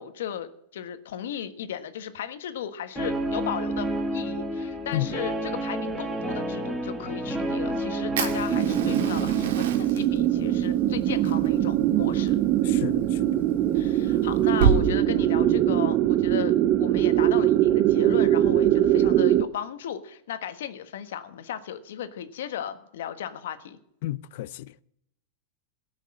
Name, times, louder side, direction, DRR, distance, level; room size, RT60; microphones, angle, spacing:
voice 1, 0.0-12.4 13.7-16.5 16.8-23.8, left 9 dB, 85° left, 1.3 m, -36 dB
Guitar, 3.0-9.5, right 1 dB, 5° right, 1.6 m, -30 dB
Fire, 8.2-14.8, right 6 dB, 80° right, 1.9 m, -30 dB
sound 1, 8.5-19.4, right 12 dB, 40° right, 0.6 m, -22 dB
voice 2, 12.6-13.3 24.0-24.7, left 16 dB, 65° left, 0.5 m, -31 dB
17.0 x 6.4 x 8.6 m
supercardioid pair, 145°, 0 cm